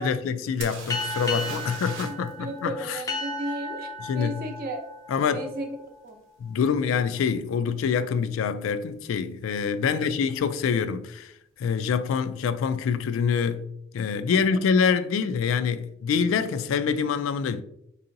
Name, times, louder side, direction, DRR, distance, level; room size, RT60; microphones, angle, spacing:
voice 1, 0.0-3.0 4.0-4.4 5.1-5.5 6.4-11.3 11.6-13.7 13.9-17.6, left 6 dB, 85° left, 0.3 m, -25 dB
sound 1, 0.6-2.3 2.6-2.7 6.1-6.2 6.8-7.0 7.3-7.9 9.9-10.0 10.3-10.4, right 3 dB, 80° right, 0.8 m, -39 dB
sound 2, 0.9-6.0, left 2 dB, 15° left, 0.5 m, -35 dB
voice 2, 2.0-3.9 4.1-4.8 5.3-5.7 6.0-6.2 9.8-10.1 14.3-14.6, right 1 dB, 50° right, 0.6 m, -34 dB
4.5 x 2.8 x 2.5 m
head